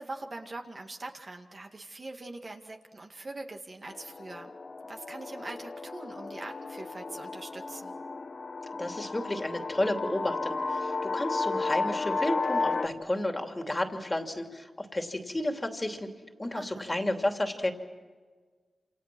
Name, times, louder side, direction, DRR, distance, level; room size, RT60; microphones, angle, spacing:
voice 1, 0.0-4.5 4.8-7.9 16.6-16.9, right 2 dB, 45° right, 3 dB, 2.1 m, -42 dB
sound 1, 3.9-12.9, left 3 dB, 50° left, 1.4 m, -33 dB
voice 2, 8.8-16.1 16.4-17.7, left 1 dB, 20° left, 4 dB, 2.8 m, -32 dB
27.5 x 27.0 x 6.2 m, 1.5 s
cardioid pair, 60°, 0 cm